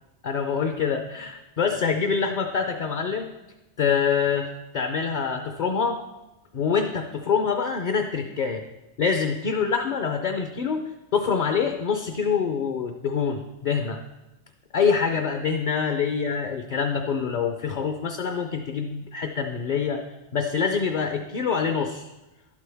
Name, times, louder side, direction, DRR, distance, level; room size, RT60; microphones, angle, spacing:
voice 1, 0.2-3.3 3.8-4.5 4.7-6.0 6.5-8.6 9.0-10.8 11.1-14.0 14.7-20.0 20.3-22.1, left 6 dB, 50° left, 5 dB, 0.6 m, -25 dB
11.5 x 8.3 x 3.4 m, 1.0 s
omnidirectional pair, 1.2 m